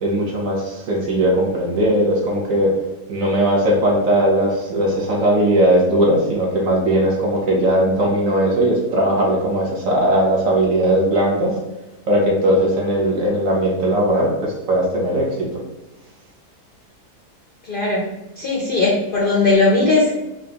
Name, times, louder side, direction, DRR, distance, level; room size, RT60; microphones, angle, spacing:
voice 1, 0.0-2.8 3.1-11.6 12.0-15.6, right 1 dB, 60° right, -2 dB, 1.4 m, -18 dB
voice 2, 17.6-20.2, left 3 dB, 55° left, -3 dB, 0.6 m, -18 dB
4.1 x 2.6 x 3.4 m, 1.0 s
omnidirectional pair, 1.7 m